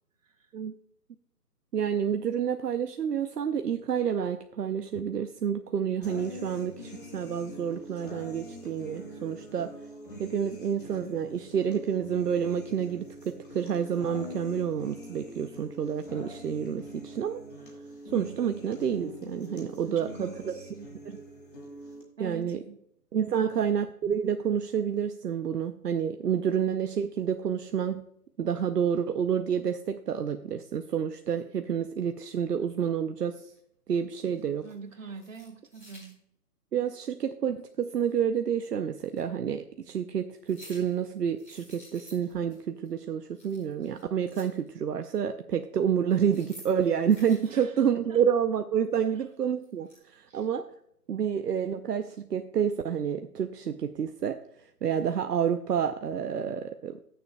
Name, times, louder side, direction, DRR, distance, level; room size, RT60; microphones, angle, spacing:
voice 1, 1.7-9.7 10.2-17.4 18.1-20.5 21.1-21.2 22.2-22.6 23.1-28.0 28.4-33.4 33.9-34.6 36.7-50.7 51.1-54.4 54.8-57.0, right 8 dB, 75° right, 8 dB, 0.8 m, -29 dB
sound 1, 6.0-22.0, equal, 30° left, 2.1 m, -44 dB
voice 2, 19.9-20.9 22.2-22.8 23.3-23.5 34.6-36.2 47.4-47.8 48.1-48.2 50.3-50.5, right 4 dB, 50° right, 4 dB, 1.6 m, -44 dB
sound 2, 33.5-33.6 34.3-34.7 35.1-36.1 38.0-38.1 39.1-39.2 40.3-41.0 41.4-42.6 42.8-43.0 43.3-44.7 46.1-47.6 49.3-50.0, equal, 10° left, 1.8 m, -52 dB
18.5 x 6.9 x 2.2 m, 0.75 s
hypercardioid pair, 180°, 48 cm